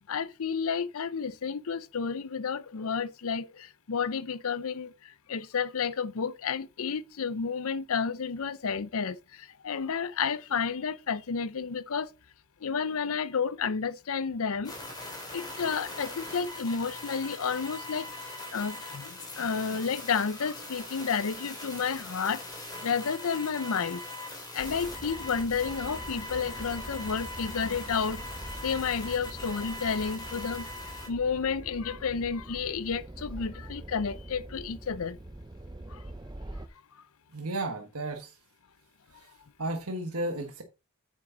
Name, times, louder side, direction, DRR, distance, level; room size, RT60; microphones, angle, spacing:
voice 1, 0.1-4.9 5.3-9.2 9.6-12.1 12.6-14.7 15.3-18.0 18.5-22.4 22.8-24.0 24.5-28.2 28.6-30.6 31.1-35.2, left 6 dB, 65° left, 0.6 m, -31 dB
sound 1, 14.6-31.1, left 2 dB, 20° left, 2.9 m, -41 dB
sound 2, 24.6-36.7, right 1 dB, 20° right, 0.6 m, -44 dB
voice 2, 37.3-38.3 39.2-39.3 39.6-40.6, right 2 dB, 75° right, 1.4 m, -33 dB
8.7 x 6.4 x 3.9 m
head